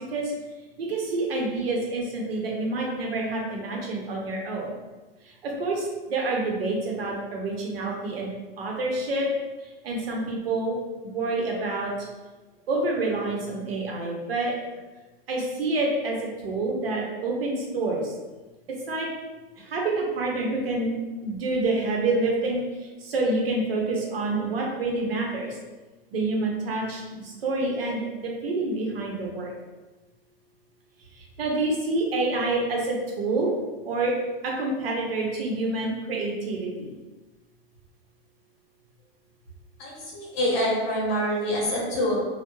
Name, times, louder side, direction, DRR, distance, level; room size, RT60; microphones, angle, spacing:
voice 1, 0.8-4.7 5.6-5.8 6.1-8.3 8.6-9.3 9.8-10.8 11.0-11.9 12.7-14.5 15.3-16.2 16.4-18.0 18.9-19.1 19.7-20.9 21.2-22.6 23.1-25.5 26.1-27.0 27.4-29.5 31.4-33.6 33.9-34.1 34.6-36.7, right 2 dB, 85° right, -1 dB, 0.8 m, -27 dB
voice 2, 39.8-42.2, equal, 40° left, -4 dB, 1.0 m, -26 dB
2.2 x 2.2 x 2.9 m, 1.2 s
hypercardioid pair, 145°, 29 cm